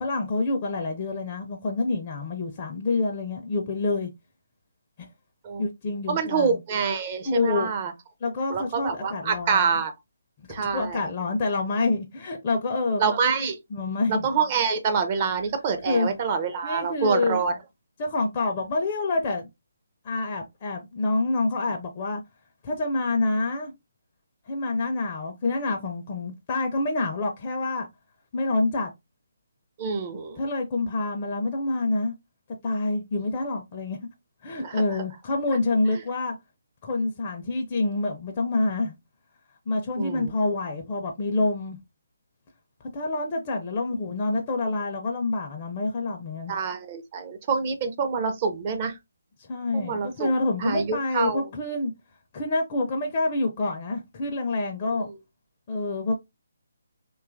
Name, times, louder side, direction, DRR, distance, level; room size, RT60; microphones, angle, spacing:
voice 1, 0.0-4.1 5.6-6.6 7.2-7.7 8.2-9.7 10.6-13.0 13.7-14.3 15.8-16.1 16.6-17.4 18.0-19.5 20.0-22.2 22.6-23.7 24.5-27.9 28.3-28.9 30.4-32.1 32.6-34.0 34.4-36.4 36.8-39.0 39.7-41.8 42.9-46.5 49.4-51.9 52.3-55.1 55.7-56.2, left 2 dB, 35° left, 0.4 m, -27 dB
voice 2, 6.1-7.9 8.5-9.9 10.5-11.0 13.0-13.6 14.2-17.6 29.8-30.4 34.6-34.8 40.0-40.3 46.5-49.0 49.7-50.3 50.6-51.4, right 5 dB, 35° right, 0.5 m, -26 dB
2.7 x 2.3 x 2.4 m
figure-of-eight pair, 150°, 0 cm